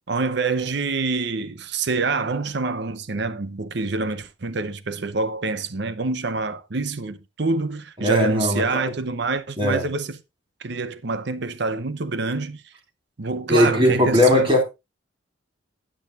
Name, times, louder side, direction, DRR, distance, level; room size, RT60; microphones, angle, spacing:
voice 1, 0.1-10.2 10.6-12.7 13.2-14.5, right 3 dB, 55° right, 0.7 m, -26 dB
voice 2, 8.0-8.8 9.6-9.9 13.5-14.6, left 1 dB, 25° right, 2.7 m, -19 dB
17.5 x 6.4 x 2.5 m
head